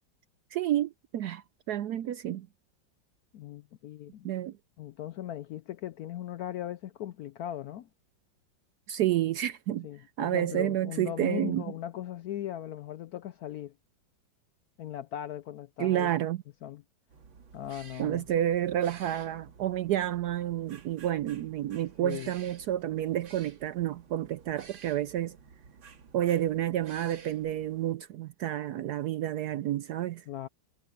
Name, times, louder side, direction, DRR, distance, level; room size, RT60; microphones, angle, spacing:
voice 1, 0.5-2.5 4.2-4.5 8.9-9.9 10.2-11.6 15.8-16.4 18.0-25.4 26.1-30.2, right 12 dB, 70° right, 0.9 m, -30 dB
voice 2, 3.3-4.3 4.8-7.9 9.8-13.7 14.8-16.1 16.6-16.8 17.5-18.2 22.0-22.3 30.3-30.5, left 11 dB, 75° left, 0.9 m, -38 dB
sound 1, 17.1-27.9, right 5 dB, 90° right, 2.6 m, -53 dB
omnidirectional pair, 2.1 m